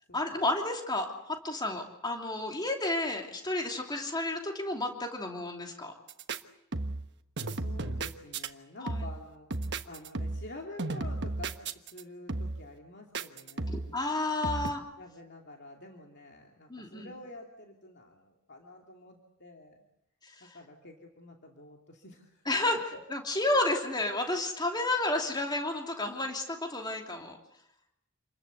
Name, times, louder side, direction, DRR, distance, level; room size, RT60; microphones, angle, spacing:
voice 1, 0.1-5.9 8.8-9.1 13.7-14.8 16.7-17.1 20.2-20.3 22.5-22.8 23.1-27.4, left 2 dB, 20° left, 2 dB, 3.0 m, -31 dB
sound 1, 6.1-6.4 6.7-7.1 7.4-8.5 8.9-9.2 9.5-10.5 10.8-12.0 12.3-12.7 13.1-14.0 14.4-14.7, right 2 dB, 50° right, 1.3 m, -34 dB
voice 2, 7.5-13.8 15.0-19.8 20.4-23.0, left 2 dB, 50° left, 1 dB, 2.7 m, -49 dB
28.5 x 21.5 x 8.2 m, 0.79 s
head